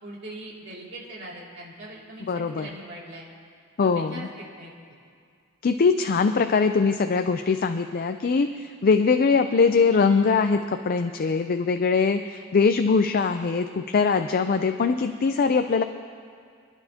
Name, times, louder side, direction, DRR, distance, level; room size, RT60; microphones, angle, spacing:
voice 1, 0.0-3.3 3.8-4.7, right 1 dB, 55° right, -4 dB, 2.6 m, -41 dB
voice 2, 2.3-2.7 3.8-4.3 5.6-15.8, left 5 dB, 45° left, 7 dB, 0.4 m, -22 dB
28.5 x 11.0 x 2.8 m, 2.2 s
head